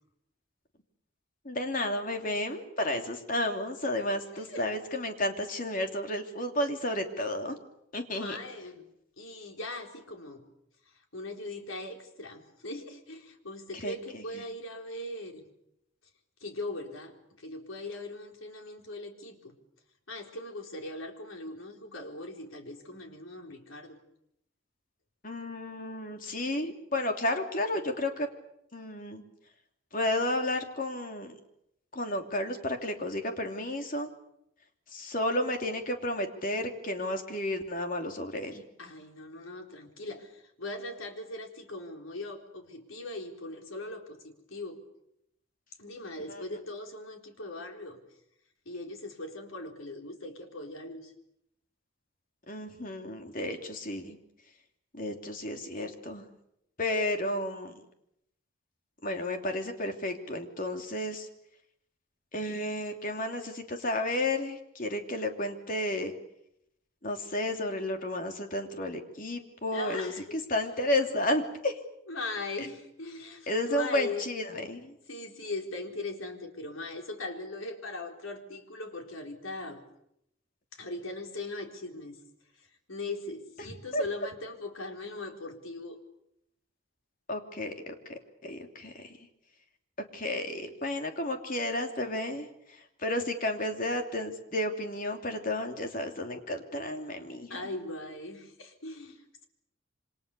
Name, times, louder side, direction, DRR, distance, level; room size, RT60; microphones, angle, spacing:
voice 1, 1.4-7.6 7.9-8.4 13.8-14.4 25.2-28.3 28.7-29.2 29.9-31.3 31.9-34.1 34.9-38.6 46.3-46.4 52.5-54.2 54.9-56.2 56.8-57.8 59.0-61.3 62.3-66.1 67.0-70.1 70.5-71.8 72.6-72.7 73.5-74.9 83.6-84.0 87.3-89.2 90.1-92.5 93.0-97.6, left 1 dB, 40° left, 5 dB, 3.0 m, -32 dB
voice 2, 4.3-4.6 8.1-8.8 9.2-10.4 11.1-15.5 16.4-19.5 20.1-24.0 38.8-44.8 45.8-48.0 48.7-51.1 69.7-70.4 72.1-74.3 75.1-79.8 80.7-82.2 82.9-86.0 97.5-99.4, left 2 dB, 85° left, 3 dB, 4.2 m, -40 dB
27.5 x 25.5 x 6.9 m, 0.77 s
head